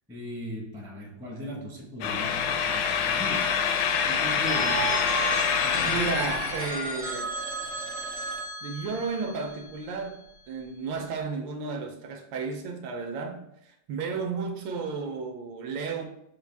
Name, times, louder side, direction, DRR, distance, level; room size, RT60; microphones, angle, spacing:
voice 1, 0.1-3.6 4.0-5.1 5.6-6.0, equal, 5° right, 0.5 m, -38 dB
sound 1, 2.0-7.0, left 7 dB, 75° left, 1.2 m, -26 dB
Telephone, 4.4-10.2, right 3 dB, 50° right, 0.8 m, -34 dB
voice 2, 5.9-7.4 8.6-16.0, right 4 dB, 75° right, 1.3 m, -33 dB
6.1 x 2.4 x 3.3 m
omnidirectional pair, 2.2 m